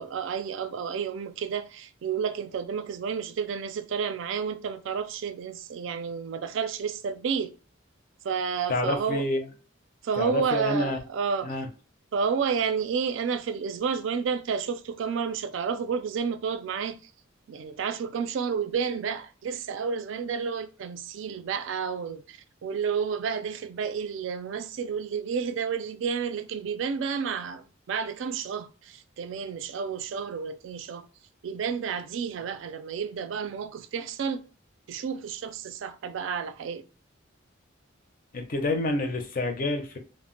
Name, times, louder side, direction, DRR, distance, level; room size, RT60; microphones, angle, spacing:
voice 1, 0.0-7.5 8.2-9.2 10.0-11.5 12.1-17.0 17.5-31.1 31.4-34.5 34.9-36.8, right 6 dB, 70° right, 0.3 m, -31 dB
voice 2, 8.7-9.4 10.2-11.0 11.4-11.7 38.3-40.0, left 2 dB, 45° left, 0.5 m, -28 dB
2.1 x 2.0 x 3.7 m
head